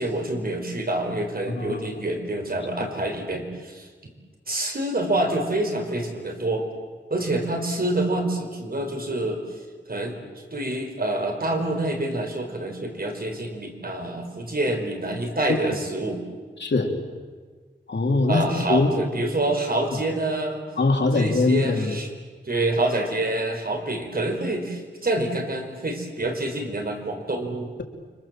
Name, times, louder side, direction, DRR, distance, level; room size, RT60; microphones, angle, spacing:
voice 1, 0.0-4.1 4.5-6.7 7.1-9.4 9.9-10.2 10.5-16.2 18.3-20.6 21.1-22.1 22.4-27.7, right 1 dB, 55° right, 3 dB, 5.0 m, -27 dB
voice 2, 16.6-16.9 17.9-18.9 20.8-22.0, left 3 dB, 70° left, 2 dB, 3.3 m, -22 dB
30.0 x 25.0 x 7.6 m, 1.5 s
wide cardioid pair, 95°, 19 cm